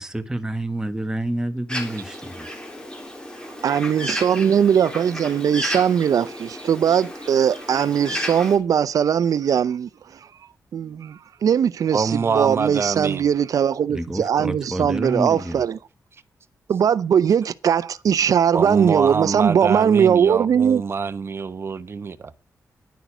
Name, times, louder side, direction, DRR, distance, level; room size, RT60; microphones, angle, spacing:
voice 1, 0.0-2.5 13.9-15.6, right 1 dB, 10° right, 1.4 m, -28 dB
Bird, 1.7-8.6, left 1 dB, 15° left, 3.5 m, -33 dB
voice 2, 3.6-9.9 10.7-15.7 16.7-20.8, right 8 dB, 75° right, 0.6 m, -20 dB
voice 3, 11.9-13.2 18.5-22.3, right 5 dB, 40° right, 0.9 m, -25 dB
10.5 x 9.2 x 6.1 m
wide cardioid pair, 115°, 6 cm